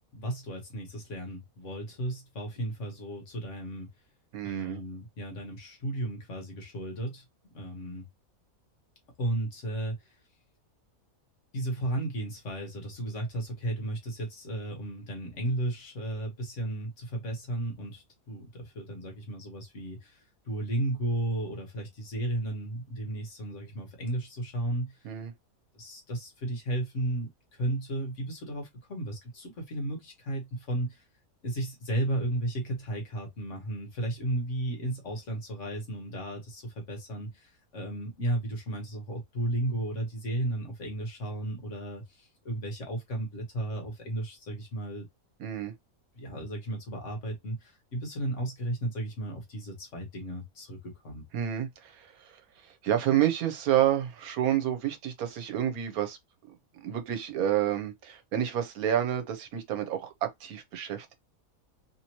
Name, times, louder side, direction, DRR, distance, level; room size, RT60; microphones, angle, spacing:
voice 1, 0.1-3.9 4.4-7.2 7.5-8.1 9.2-10.1 11.5-25.0 25.7-31.0 31.4-45.1 46.1-51.2, right 1 dB, 55° left, 1.5 m, -34 dB
voice 2, 4.3-4.8 25.0-25.3 45.4-45.7 51.3-52.4 52.8-56.2 56.8-61.1, right 11 dB, 80° right, 1.2 m, -29 dB
3.4 x 2.9 x 2.9 m
omnidirectional pair, 1.5 m